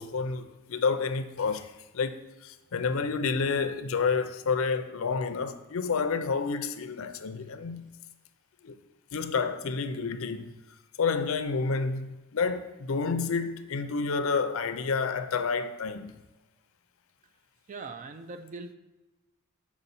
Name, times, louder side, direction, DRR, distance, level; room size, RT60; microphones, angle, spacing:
voice 1, 0.0-2.1 2.4-7.9 8.6-8.8 9.1-10.5 11.0-16.2, left 5 dB, 65° left, 0.5 m, -29 dB
voice 2, 17.7-18.7, right 3 dB, 35° right, 0.4 m, -41 dB
6.6 x 4.9 x 4.2 m
head